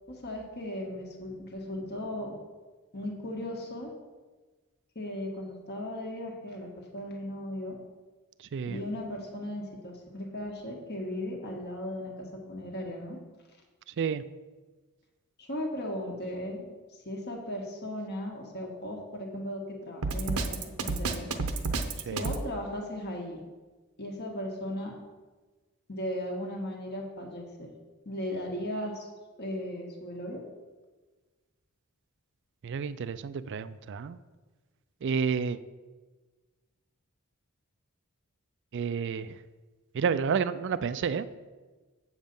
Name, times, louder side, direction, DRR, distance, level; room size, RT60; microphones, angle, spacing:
voice 1, 0.1-2.3 2.9-3.9 4.9-7.7 8.7-13.2 15.4-16.7 17.0-21.3 22.1-23.5 24.0-24.9 25.9-27.7 28.0-29.1 29.4-30.4, left 1 dB, 50° left, 0 dB, 1.5 m, -37 dB
voice 2, 8.4-8.8 13.9-14.2 22.1-22.2 32.6-34.2 35.0-35.6 38.7-39.4 39.9-41.3, right 6 dB, 55° right, 13 dB, 0.4 m, -30 dB
Drum kit, 20.0-22.4, right 3 dB, 75° right, 0.8 m, -30 dB
7.8 x 7.3 x 5.4 m, 1.3 s
head